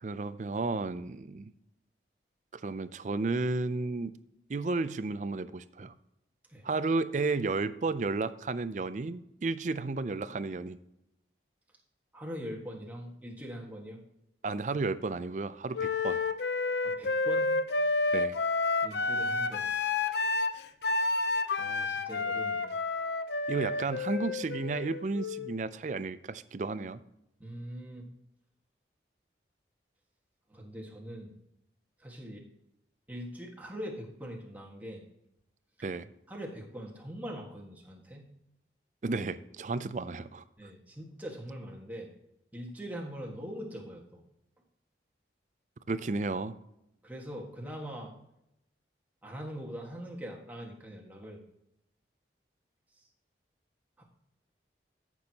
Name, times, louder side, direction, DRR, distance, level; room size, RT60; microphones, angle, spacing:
voice 1, 0.0-1.5 2.5-4.1 4.5-5.9 6.6-10.8 14.4-16.2 18.1-18.4 23.5-27.0 35.8-36.1 39.0-40.4 45.9-46.6, right 3 dB, 45° right, 13 dB, 0.4 m, -32 dB
voice 2, 12.1-14.0 16.8-17.6 18.8-19.6 21.2-21.3 21.6-22.8 27.4-28.1 30.5-31.3 32.0-32.5 33.1-35.0 36.3-38.3 40.6-42.1 42.5-44.2 47.0-48.1 49.2-51.4 53.0-53.1 54.0-54.1, equal, 10° right, -2 dB, 1.5 m, -42 dB
Wind instrument woodwind instrument, 15.7-25.6, left 3 dB, 70° left, 0.6 m, -30 dB
14.0 x 6.1 x 2.9 m, 0.83 s
head